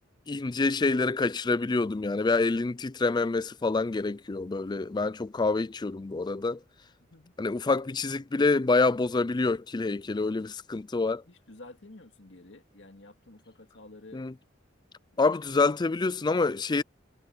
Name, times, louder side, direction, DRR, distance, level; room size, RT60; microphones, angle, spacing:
voice 1, 0.3-6.6 7.4-11.2 14.1-14.3 15.2-16.8, left 3 dB, 25° left, 0.4 m, -27 dB
voice 2, 7.0-7.3 11.3-14.2 15.1-15.3, left 2 dB, 70° left, 2.3 m, -50 dB
head